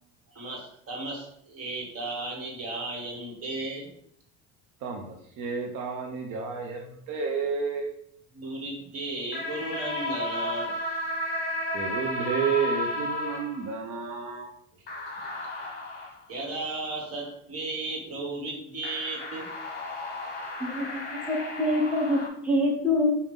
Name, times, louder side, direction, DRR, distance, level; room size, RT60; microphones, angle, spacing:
voice 1, 0.3-3.9 8.3-10.8 15.2-15.3 16.3-19.5, right 2 dB, 40° right, -2 dB, 1.8 m, -35 dB
voice 2, 4.8-7.9 11.7-14.5, right 5 dB, 60° right, 1 dB, 0.8 m, -31 dB
sound 1, 9.3-13.8 14.9-16.2 18.8-22.3, left 1 dB, 30° left, 1.4 m, -33 dB
voice 3, 20.6-21.0 21.3-23.1, left 1 dB, 5° right, -2 dB, 1.2 m, -25 dB
5.0 x 2.8 x 3.6 m, 0.69 s
supercardioid pair, 105°, 35 cm